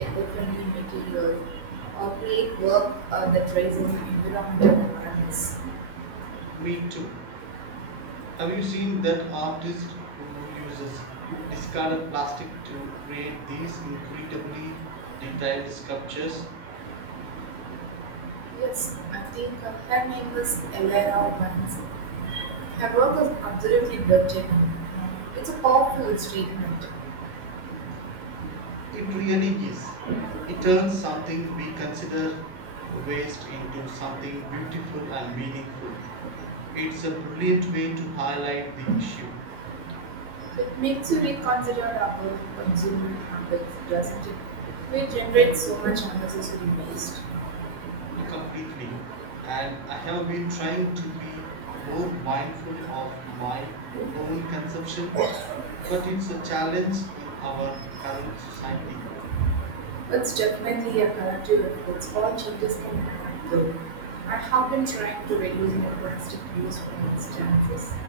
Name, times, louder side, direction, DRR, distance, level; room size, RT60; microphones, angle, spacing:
voice 1, 2.0-2.8 3.1-4.2 4.5-4.8 5.1-5.2 19.4-19.5 19.9-20.0 20.8-21.3 21.6-21.7 22.8-23.3 23.6-24.2 24.5-24.6 25.6-26.4 40.8-41.9 42.2-42.4 42.7-43.0 43.9-44.0 44.9-45.5 45.8-45.9 46.6-46.7 55.2-55.3 60.1-61.7 62.2-62.3 63.5-63.6 64.5-65.9 67.4-67.7, right 5 dB, 65° right, 0.9 m, -22 dB
voice 2, 6.5-7.2 8.4-11.1 11.5-14.9 15.2-16.5 25.1-25.3 28.9-30.0 30.5-32.5 32.9-36.0 36.7-39.3 48.2-49.1 49.4-53.8 54.1-55.3 55.8-59.0, right 1 dB, 35° right, 0.9 m, -30 dB
8.4 x 5.7 x 2.3 m
supercardioid pair, 170°, 35 cm